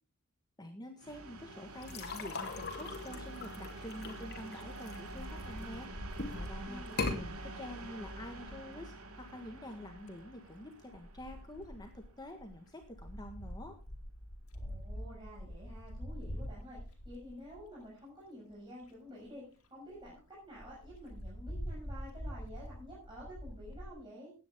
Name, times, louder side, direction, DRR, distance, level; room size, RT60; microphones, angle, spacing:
voice 1, 0.6-5.9 6.3-6.8 7.2-13.8, left 1 dB, 20° left, 4 dB, 1.6 m, -47 dB
sound 1, 1.0-12.6, right 2 dB, 80° right, 2.7 m, -47 dB
sound 2, 1.8-5.6 6.1-6.5 6.9-7.2, left 3 dB, 50° left, 2.7 m, -39 dB
Wind, 5.1-8.6 9.7-10.2 10.9-17.9 18.5-18.6 18.8-18.9 19.3-19.4 19.6-19.7 20.0-20.1 20.6-23.9, equal, 80° left, 2.7 m, -45 dB
voice 2, 6.6-7.2 14.6-24.3, equal, 20° right, -6 dB, 6.2 m, -50 dB
17.0 x 9.7 x 3.7 m, 0.34 s
head